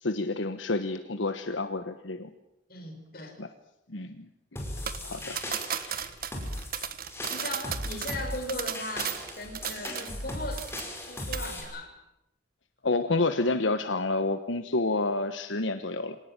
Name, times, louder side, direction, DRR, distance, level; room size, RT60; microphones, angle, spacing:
voice 1, 0.0-2.3 3.4-3.5 3.9-4.3 5.0-5.4 5.8-6.1 12.8-16.2, left 2 dB, 85° left, 9 dB, 1.3 m, -29 dB
voice 2, 2.7-3.4 7.3-10.8 11.1-12.0, left 1 dB, 50° left, 4 dB, 5.5 m, -38 dB
sound 1, 4.6-11.6, left 1 dB, 15° left, 5.2 m, -38 dB
sound 2, 4.9-10.3 10.6-11.0 11.3-11.5, right 9 dB, 50° right, 1.4 m, -35 dB
25.5 x 18.5 x 9.0 m, 0.86 s
head